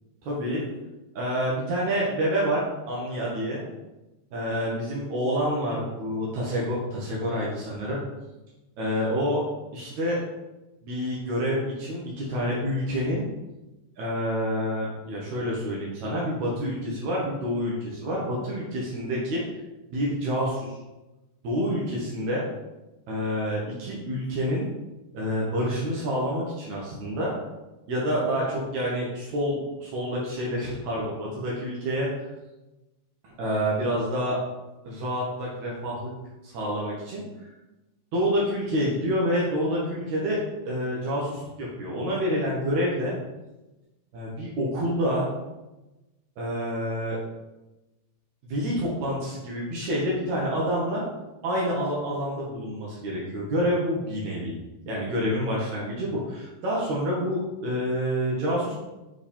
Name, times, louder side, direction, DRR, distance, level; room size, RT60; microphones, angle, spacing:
voice 1, 0.2-0.6 1.1-3.6 4.3-8.0 8.8-9.4 9.7-10.2 10.8-13.2 14.0-19.4 19.9-20.8 21.4-22.4 23.1-24.7 25.1-27.3 27.9-32.1 33.2-34.4 34.8-36.1 36.4-37.2 38.1-43.1 44.1-45.2 46.4-47.2 48.5-51.0 51.4-54.6 54.9-58.7, equal, 90° right, -4 dB, 1.6 m, -28 dB
7.8 x 3.6 x 4.3 m, 1.0 s
omnidirectional pair, 5.1 m